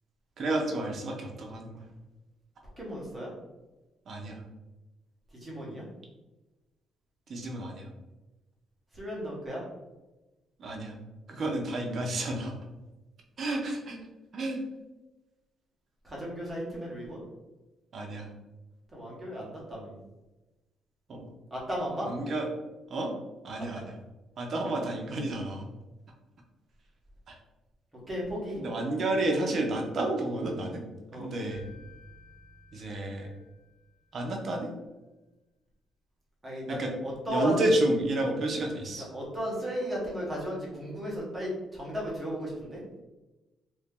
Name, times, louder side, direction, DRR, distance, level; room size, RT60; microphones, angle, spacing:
voice 1, 0.4-1.8 4.1-4.4 7.3-7.9 10.6-10.9 11.3-12.5 13.4-14.0 14.3-14.6 17.9-18.3 21.1-21.3 22.1-22.5 22.9-23.1 23.4-23.9 24.4-25.7 27.3-27.4 28.5-30.8 31.1-31.6 32.7-33.3 34.1-34.7 36.7-36.9 37.2-39.1, right 1 dB, 40° right, 1 dB, 0.6 m, -30 dB
voice 2, 2.8-3.3 5.3-5.8 8.9-9.6 16.0-17.2 18.9-20.0 21.5-22.1 28.1-28.6 31.1-31.3 36.4-37.6 39.0-42.8, equal, 15° right, -5 dB, 1.0 m, -35 dB
sound 1, 31.5-34.4, left 1 dB, 30° left, 1.4 m, -54 dB
2.8 x 2.6 x 3.6 m, 1.1 s
cardioid pair, 165°, 0 cm